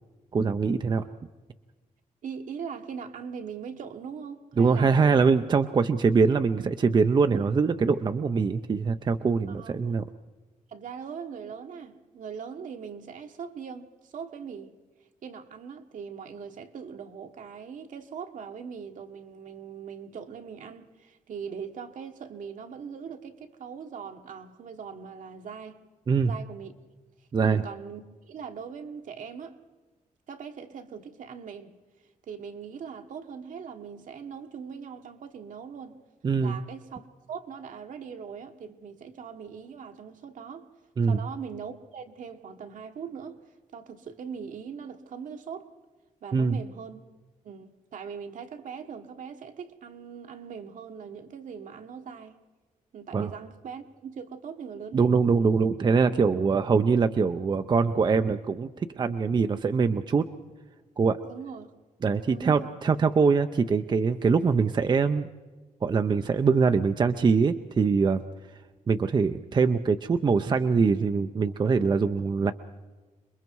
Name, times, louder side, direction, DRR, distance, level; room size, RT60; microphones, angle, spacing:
voice 1, 0.3-1.1 4.6-10.1 26.1-26.3 27.3-27.6 36.2-36.6 41.0-41.2 46.3-46.6 53.1-53.3 54.9-60.3 61.0-61.2 62.0-65.3 65.8-68.2 68.9-72.5, right 5 dB, 30° right, 0.6 m, -23 dB
voice 2, 2.2-5.2 9.5-9.9 10.7-14.7 15.2-25.8 26.2-26.7 27.4-29.6 30.3-31.8 32.3-36.0 36.4-40.7 41.1-43.4 43.7-45.7 46.2-47.0 47.4-52.4 52.9-55.6 61.2-61.7 62.3-62.7, right 6 dB, 70° right, 1.5 m, -40 dB
27.5 x 22.0 x 4.7 m
wide cardioid pair, 145°, 14 cm